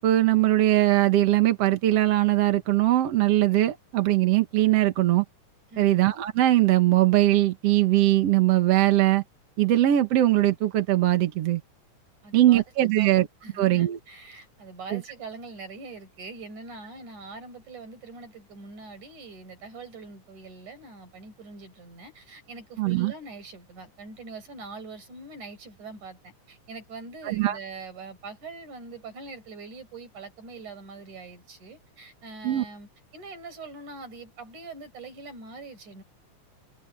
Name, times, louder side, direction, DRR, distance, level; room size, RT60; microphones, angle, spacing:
voice 1, 0.0-5.2 5.8-9.2 9.6-11.6 12.3-13.3 13.6-14.0 14.9-15.0 22.8-23.1 27.2-27.6 32.4-32.6, right 14 dB, 60° right, 2.2 m, -21 dB
voice 2, 5.7-6.0 12.2-12.6 13.0-36.0, right 3 dB, 75° right, 7.4 m, -43 dB
omnidirectional pair, 3.5 m